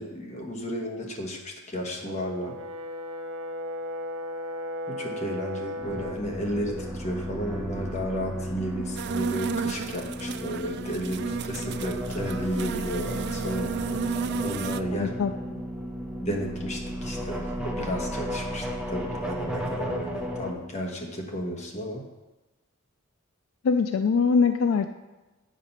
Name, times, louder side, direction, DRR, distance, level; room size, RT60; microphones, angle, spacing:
voice 1, 0.0-2.6 4.9-13.8 14.4-15.1 16.2-22.0, equal, 35° left, 1 dB, 1.3 m, -33 dB
Brass instrument, 2.0-6.3, equal, 80° right, 0.8 m, -35 dB
sound 1, 5.8-20.5, equal, 5° right, 0.8 m, -34 dB
sound 2, 9.0-14.8, right 5 dB, 55° right, 0.3 m, -32 dB
voice 2, 14.9-15.6 23.6-24.9, left 5 dB, 70° left, 8 dB, 0.4 m, -23 dB
8.2 x 5.1 x 5.7 m, 1.1 s
head